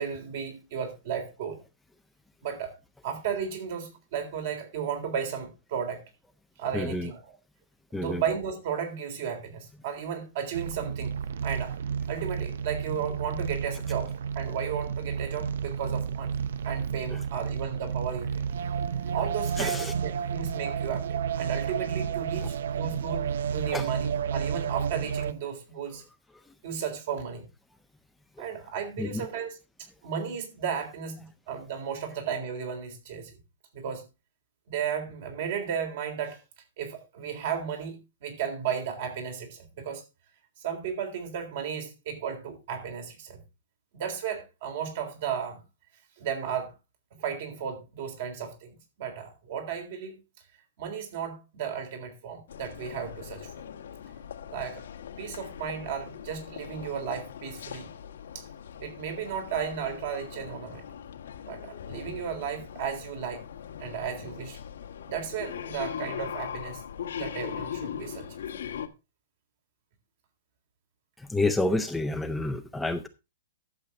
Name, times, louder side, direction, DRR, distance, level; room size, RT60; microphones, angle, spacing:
voice 1, 0.0-1.6 2.4-2.7 3.0-6.0 6.6-7.4 7.9-11.1 11.4-11.7 12.1-16.4 16.6-18.4 19.1-21.0 21.4-26.0 26.6-27.4 28.4-29.6 30.0-33.4 33.7-34.0 34.7-36.4 36.8-40.0 40.6-43.4 43.9-45.6 46.2-46.7 47.1-50.2 50.8-53.5 54.5-54.8 55.2-57.9 58.3-58.5 58.8-60.8 61.5-63.4 63.8-64.6 65.1-66.8 67.2-68.3, right 7 dB, 50° right, 3.7 m, -34 dB
voice 2, 6.7-7.1 7.9-8.2 17.1-17.2 19.5-19.9 22.4-22.5 23.7-23.9 29.0-29.3 71.2-73.1, left 2 dB, 5° left, 0.5 m, -29 dB
sound 1, 10.5-25.3, right 7 dB, 75° right, 0.6 m, -31 dB
sound 2, 52.5-68.9, left 9 dB, 85° left, 1.4 m, -40 dB
11.5 x 7.3 x 4.0 m
hypercardioid pair, 170°, 0 cm